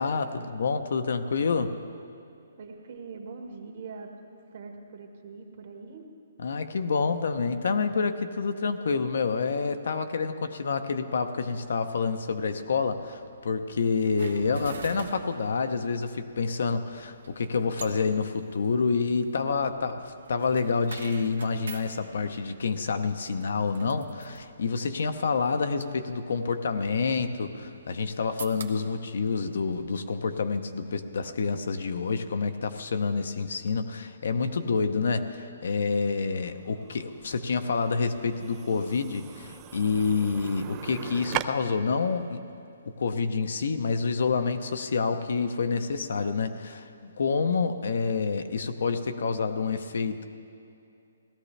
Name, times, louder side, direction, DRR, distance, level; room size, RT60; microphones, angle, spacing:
voice 1, 0.0-1.7 6.4-42.4 42.8-50.2, left 4 dB, 65° left, 8 dB, 0.8 m, -28 dB
voice 2, 2.6-6.0, right 4 dB, 50° right, 2 dB, 1.6 m, -43 dB
sound 1, 11.4-30.4, right 4 dB, 75° right, 1.1 m, -48 dB
sound 2, 36.0-41.4, right 14 dB, 20° right, 0.3 m, -39 dB
17.5 x 13.0 x 3.3 m, 2.6 s
hypercardioid pair, 165°, 0 cm